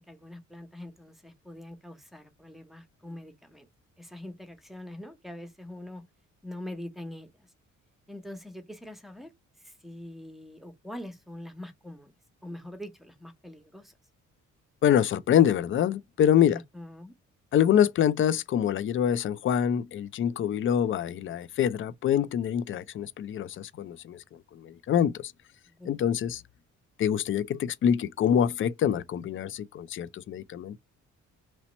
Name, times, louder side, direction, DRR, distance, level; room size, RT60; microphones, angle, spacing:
voice 1, 0.1-3.7 4.0-6.0 6.4-7.5 8.1-9.3 9.6-12.1 12.4-13.9 16.5-17.1 25.8-25.9, left 1 dB, ahead, 1.0 m, -43 dB
voice 2, 14.8-16.6 17.5-24.2 24.5-25.3 25.9-26.4 27.0-30.8, left 9 dB, 45° left, 0.4 m, -25 dB
3.0 x 2.9 x 4.2 m
cardioid pair, 90°, 30 cm